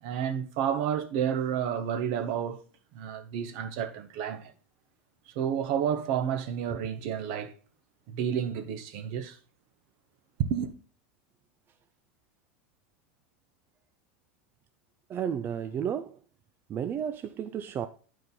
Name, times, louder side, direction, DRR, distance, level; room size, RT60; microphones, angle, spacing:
voice 1, 0.0-2.6 2.9-4.5 5.3-7.5 8.1-9.4 10.4-10.7, right 8 dB, 60° right, 1.2 m, -30 dB
voice 2, 15.1-16.2 16.7-17.9, right 8 dB, 35° right, 0.5 m, -32 dB
9.5 x 5.0 x 3.9 m
hypercardioid pair, 90°, 6 cm